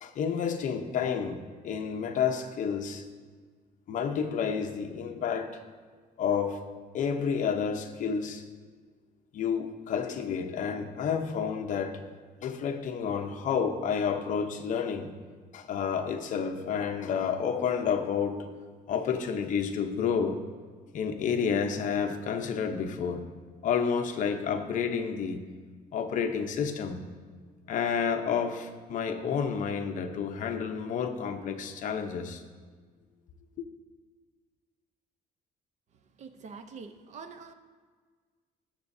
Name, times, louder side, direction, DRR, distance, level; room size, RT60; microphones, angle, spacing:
voice 1, 0.0-3.1 3.9-5.6 6.2-6.7 6.9-8.4 9.3-12.0 12.4-15.1 15.5-18.5 18.9-20.4 20.9-23.3 23.6-25.4 25.9-27.0 27.7-32.4, left 6 dB, 50° left, 6 dB, 0.8 m, -30 dB
voice 2, 35.9-37.5, right 5 dB, 45° right, 8 dB, 0.7 m, -45 dB
19.0 x 7.4 x 2.7 m, 1.5 s
cardioid pair, 165°, 16 cm